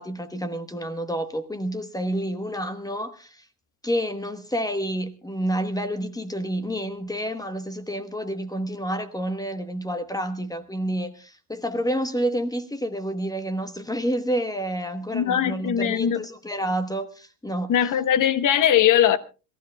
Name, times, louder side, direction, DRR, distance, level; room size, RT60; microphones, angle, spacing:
voice 1, 0.0-3.4 3.8-17.7, equal, 10° left, 1.1 m, -29 dB
voice 2, 15.1-16.2 17.7-19.2, left 10 dB, 45° left, 1.1 m, -20 dB
26.5 x 16.0 x 2.3 m
supercardioid pair, 100°, 44 cm